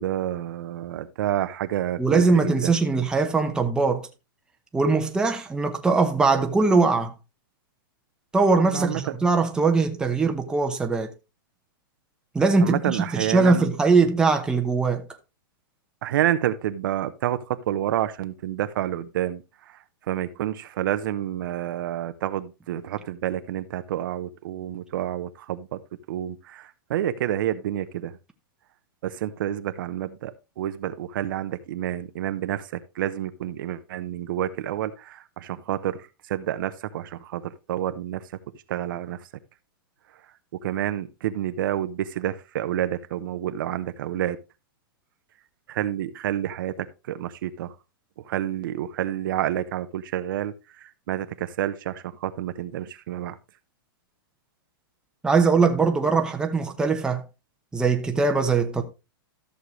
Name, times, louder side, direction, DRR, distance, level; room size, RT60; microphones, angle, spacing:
voice 1, 0.0-2.8 8.7-9.0 12.6-13.7 16.0-19.8 20.1-25.8 26.1-28.2 29.0-38.3 38.7-39.2 40.6-44.4 45.7-47.7 48.3-53.4, right 12 dB, 60° right, 0.8 m, -29 dB
voice 2, 2.0-4.1 4.7-7.1 8.3-11.1 12.3-15.0 55.2-57.2 57.7-58.8, right 4 dB, 5° right, 0.9 m, -21 dB
13.5 x 6.6 x 3.1 m
hypercardioid pair, 150°, 12 cm